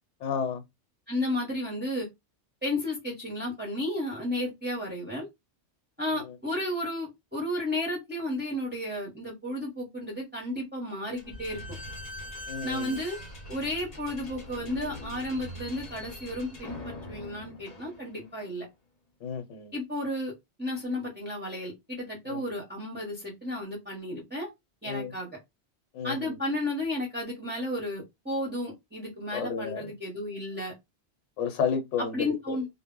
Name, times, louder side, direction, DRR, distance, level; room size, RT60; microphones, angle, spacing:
voice 1, 0.2-0.6 12.5-13.0 19.2-19.7 22.3-22.4 24.9-25.1 25.9-26.3 29.3-29.8 31.4-32.6, left 6 dB, 75° left, 1.0 m, -31 dB
voice 2, 1.1-2.1 2.6-5.3 6.0-11.6 12.6-13.2 13.5-18.7 19.7-20.3 20.6-24.5 24.8-25.3 26.0-30.7 32.1-32.7, left 1 dB, 10° right, 0.6 m, -33 dB
Slam / Squeak, 11.2-18.4, left 1 dB, 40° left, 0.7 m, -42 dB
2.1 x 2.1 x 3.6 m
omnidirectional pair, 1.3 m